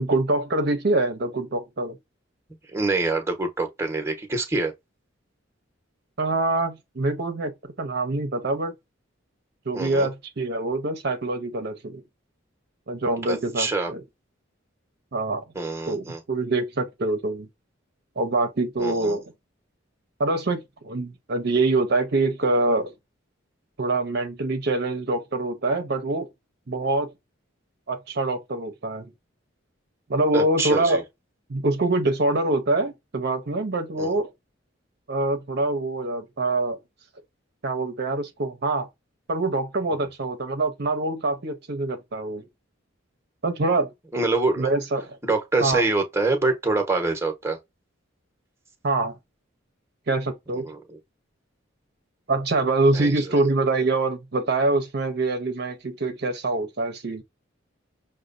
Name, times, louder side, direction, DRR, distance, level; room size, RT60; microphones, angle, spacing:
voice 1, 0.0-2.0 6.2-8.7 9.7-12.0 12.9-14.0 15.1-15.4 15.9-17.5 18.2-19.2 20.2-22.9 23.8-26.3 26.7-27.1 27.9-29.1 30.1-31.0 31.5-34.3 35.1-36.8 37.6-38.9 39.3-42.5 43.4-43.9 44.6-45.2 45.6-45.9 48.8-49.1 50.1-50.7 52.3-57.2, right 2 dB, 55° right, 0.7 m, -25 dB
voice 2, 2.7-4.7 9.7-10.1 13.3-13.9 15.5-16.2 18.8-19.2 30.3-31.0 34.0-34.1 39.9-40.0 44.1-44.7 45.2-47.6 50.6-51.0 52.9-53.1, right 3 dB, 15° right, 1.0 m, -25 dB
6.2 x 2.2 x 2.5 m
head